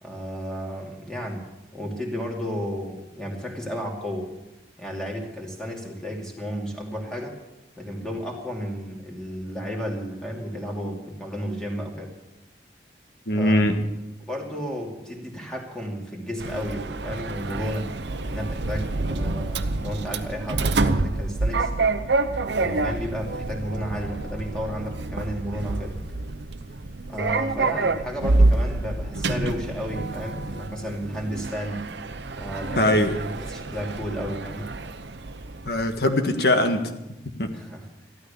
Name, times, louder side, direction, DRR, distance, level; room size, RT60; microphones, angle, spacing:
voice 1, 0.0-4.3 4.8-7.4 7.8-12.1 13.3-13.6 14.3-17.9 18.2-21.7 22.4-26.0 27.1-31.9 32.4-34.7 37.5-37.9, equal, 5° left, -1 dB, 2.6 m, -33 dB
voice 2, 13.3-13.8 32.8-33.2 35.7-36.9 37.4-37.5, left 1 dB, 65° left, 6 dB, 1.6 m, -21 dB
Sliding door, 16.4-36.0, right 2 dB, 80° right, 0.8 m, -27 dB
14.0 x 13.0 x 6.9 m, 0.98 s
head